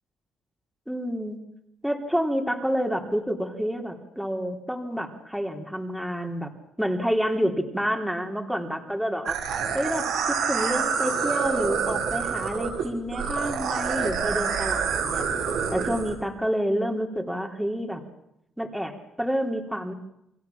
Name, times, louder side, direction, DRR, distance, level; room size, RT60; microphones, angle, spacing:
voice 1, 0.9-1.4 1.8-6.5 6.8-9.4 9.7-10.1 10.5-15.3 15.7-18.0 18.6-19.9, equal, ahead, 3 dB, 3.5 m, -28 dB
sound 1, 9.3-16.1, right 6 dB, 85° right, 7.0 m, -27 dB
29.5 x 23.0 x 7.3 m, 0.81 s
cardioid pair, 90°, 0 cm